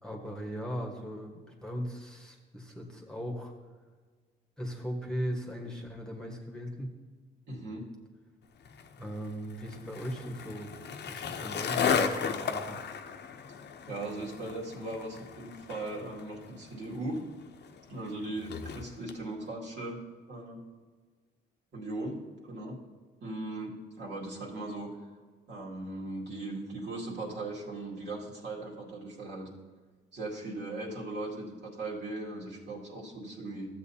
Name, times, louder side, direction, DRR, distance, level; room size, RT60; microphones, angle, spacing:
voice 1, 0.0-3.5 4.6-6.9 9.0-10.7 11.1-12.8, equal, 5° left, 0 dB, 1.3 m, -38 dB
voice 2, 7.5-7.8 13.9-17.2 17.9-20.0 20.3-20.6 21.7-22.2 22.4-22.8 23.2-24.9 25.5-29.5 30.1-33.7, right 2 dB, 65° right, -4 dB, 2.3 m, -38 dB
Skateboard, 8.7-19.2, left 6 dB, 60° left, 0.7 m, -35 dB
13.5 x 7.8 x 2.8 m, 1.5 s
cardioid pair, 90°, 20 cm